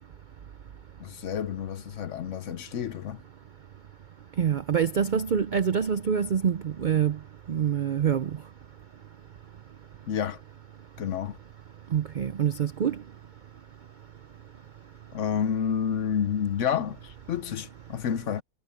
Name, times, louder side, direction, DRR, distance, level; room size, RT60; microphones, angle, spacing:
voice 1, 1.0-3.2 10.1-10.4 11.0-11.4 15.1-18.4, left 8 dB, 60° left, 1.0 m, -29 dB
voice 2, 4.4-8.4 11.9-13.0, right 8 dB, 65° right, 0.4 m, -26 dB
omnidirectional pair, 1.5 m